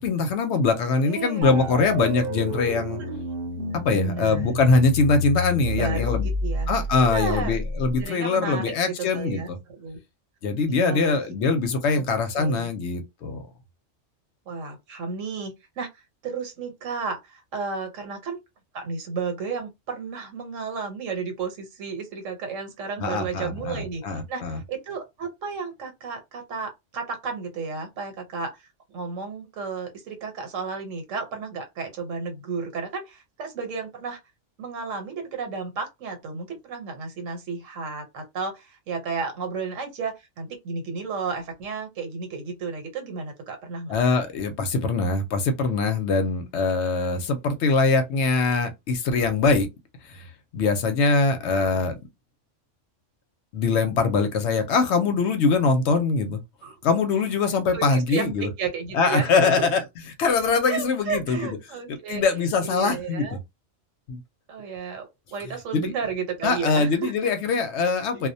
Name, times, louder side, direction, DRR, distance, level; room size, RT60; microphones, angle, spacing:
voice 1, 0.0-3.0 3.8-6.3 6.7-9.6 10.4-13.4 23.0-24.6 43.9-49.7 50.1-50.3 50.5-51.9 53.5-56.4 56.8-58.5 58.9-59.8 60.2-61.6 62.1-63.3 64.1-64.2 65.7-65.9 66.4-68.3, left 4 dB, 70° left, 0.8 m, -23 dB
voice 2, 1.0-1.7 3.0-3.1 3.9-4.6 5.4-6.7 7.0-7.6 8.0-10.0 10.7-11.2 11.9-12.0 12.3-12.7 14.5-15.9 16.2-18.4 18.7-28.5 28.9-34.2 34.6-44.0 51.4-51.7 56.6-56.7 57.7-59.3 60.6-63.4 64.5-67.3 68.1-68.3, right 5 dB, 85° right, 1.2 m, -33 dB
sound 1, 1.4-8.1, left 2 dB, 60° right, 0.8 m, -30 dB
2.3 x 2.1 x 2.6 m
omnidirectional pair, 1.3 m